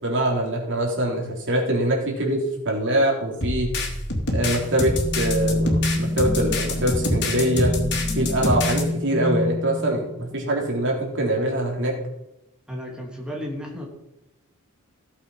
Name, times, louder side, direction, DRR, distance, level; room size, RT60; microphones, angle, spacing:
voice 1, 0.0-3.7 4.3-7.8 8.2-11.9, right 1 dB, 60° right, 0 dB, 3.6 m, -23 dB
sound 1, 3.4-8.8, left 2 dB, 55° left, 3.0 m, -26 dB
sound 2, 4.4-10.7, left 1 dB, 30° left, 5.1 m, -28 dB
voice 2, 12.7-13.9, equal, 5° right, -2 dB, 3.0 m, -33 dB
16.5 x 8.0 x 5.7 m, 0.89 s
head